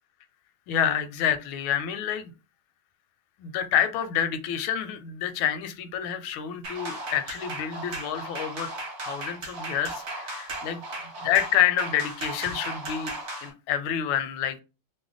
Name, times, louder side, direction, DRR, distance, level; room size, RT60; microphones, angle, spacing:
voice 1, 0.7-2.3 3.4-8.7 9.0-10.8 11.2-13.1 13.4-14.6, left 9 dB, 85° left, 9 dB, 1.4 m, -28 dB
sound 1, 6.6-13.5, right 1 dB, 45° right, 1.0 m, -36 dB
3.3 x 2.1 x 3.7 m, 0.30 s
omnidirectional pair, 2.2 m